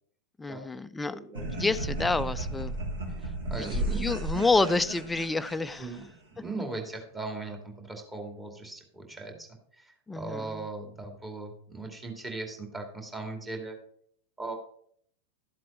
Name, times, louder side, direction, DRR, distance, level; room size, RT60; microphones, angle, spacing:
voice 1, 0.4-1.2 1.5-2.7 3.5-5.9 10.1-10.6, left 3 dB, 10° left, 0.5 m, -28 dB
voice 2, 1.1-1.8 3.5-4.1 5.8-6.1 6.4-9.5 9.8-13.8 14.4-14.5, right 3 dB, 15° right, 2.5 m, -38 dB
sound 1, 1.3-6.1, right 1 dB, 60° right, 3.4 m, -34 dB
12.5 x 7.6 x 4.3 m
figure-of-eight pair, 90°, 0 cm